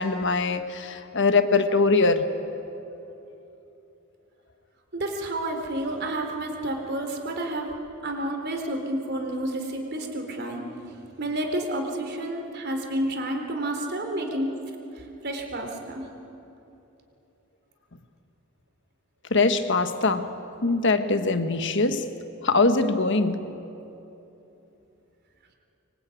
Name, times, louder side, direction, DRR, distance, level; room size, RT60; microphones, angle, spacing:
voice 1, 0.0-2.3 19.3-20.3 20.6-22.1 22.4-23.5, left 3 dB, 55° left, 9 dB, 1.4 m, -22 dB
voice 2, 4.9-7.7 8.0-10.7 11.2-14.5 15.0-16.0, right 1 dB, 50° right, 3 dB, 3.8 m, -30 dB
25.5 x 23.5 x 9.2 m, 3.0 s
head